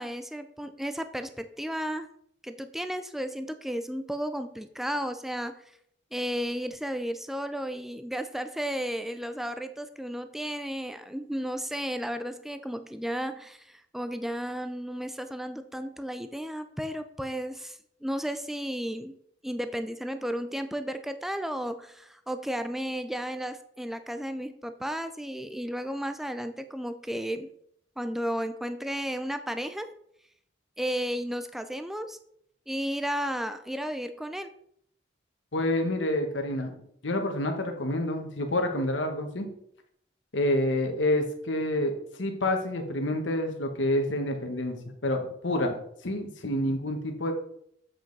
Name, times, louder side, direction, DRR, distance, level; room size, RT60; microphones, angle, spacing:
voice 1, 0.0-2.1 2.4-5.6 6.1-19.1 19.4-27.5 28.0-29.9 30.8-32.2 32.7-34.5, equal, ahead, 9 dB, 0.3 m, -33 dB
voice 2, 35.5-36.7 37.0-39.5 40.3-45.7 46.0-47.3, left 1 dB, 85° left, 5 dB, 1.3 m, -28 dB
7.6 x 5.3 x 3.9 m, 0.69 s
head